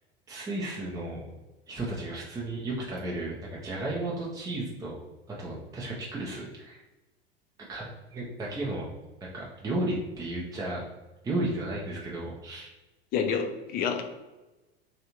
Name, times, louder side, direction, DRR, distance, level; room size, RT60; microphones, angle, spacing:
voice 1, 0.3-1.2 1.7-5.0 5.3-6.8 7.6-8.9 9.2-10.9 11.2-12.7, right 2 dB, 10° right, -4 dB, 0.6 m, -34 dB
voice 2, 13.1-14.0, left 6 dB, 30° left, 6 dB, 0.5 m, -28 dB
3.2 x 2.6 x 2.9 m, 1.1 s
figure-of-eight pair, 80°, 31 cm